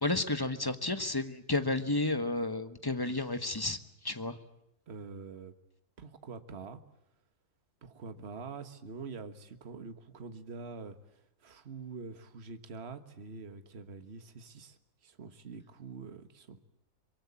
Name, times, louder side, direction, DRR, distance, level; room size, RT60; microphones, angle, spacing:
voice 1, 0.0-3.8 4.0-4.4, left 2 dB, 15° left, 10 dB, 1.2 m, -31 dB
voice 2, 4.9-5.5 6.0-6.8 7.8-14.8 15.0-16.6, right 4 dB, 45° right, 10 dB, 1.7 m, -45 dB
24.5 x 23.0 x 8.5 m, 0.84 s
omnidirectional pair, 1.6 m